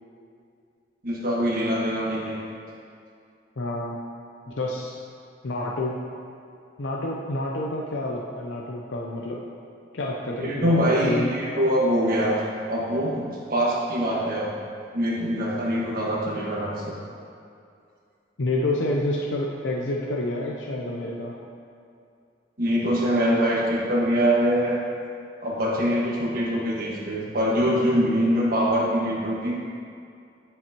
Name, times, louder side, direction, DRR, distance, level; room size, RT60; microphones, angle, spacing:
voice 1, 1.0-2.4 10.4-12.3 12.7-14.5 14.9-16.9 22.6-24.8 25.4-29.5, equal, 55° right, -5 dB, 1.5 m, -23 dB
voice 2, 3.6-4.0 4.5-5.0 5.4-6.0 6.8-9.4 9.9-11.3 18.4-21.4, left 1 dB, 85° left, -2 dB, 0.6 m, -28 dB
10.5 x 5.6 x 2.9 m, 2.4 s
head